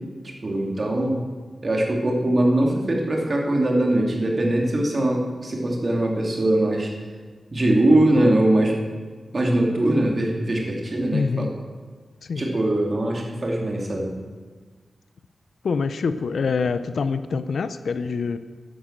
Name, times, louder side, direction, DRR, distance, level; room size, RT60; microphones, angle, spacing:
voice 1, 0.4-1.2 1.6-6.9 7.5-8.7 9.3-11.5 12.4-14.1, right 1 dB, 40° right, 0 dB, 2.8 m, -21 dB
voice 2, 11.1-11.5 12.2-12.4 15.6-18.4, left 5 dB, 80° left, 12 dB, 0.6 m, -25 dB
11.5 x 10.0 x 7.5 m, 1.5 s
wide cardioid pair, 90°, 0 cm